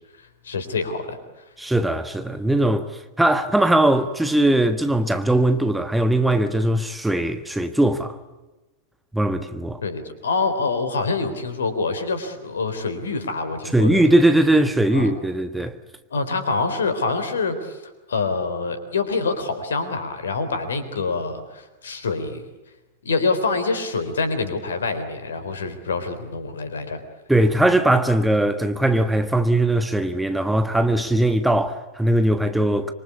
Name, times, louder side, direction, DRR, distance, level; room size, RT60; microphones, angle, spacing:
voice 1, 0.4-1.2 9.8-14.0 14.9-15.1 16.1-17.8 18.1-22.4 23.0-27.0, left 4 dB, 70° left, 3.8 m, -26 dB
voice 2, 1.6-2.9 3.2-8.2 9.1-9.8 13.7-15.8 27.3-32.9, right 1 dB, 5° right, 1.5 m, -20 dB
26.0 x 24.5 x 8.4 m
figure-of-eight pair, 90°, 0 cm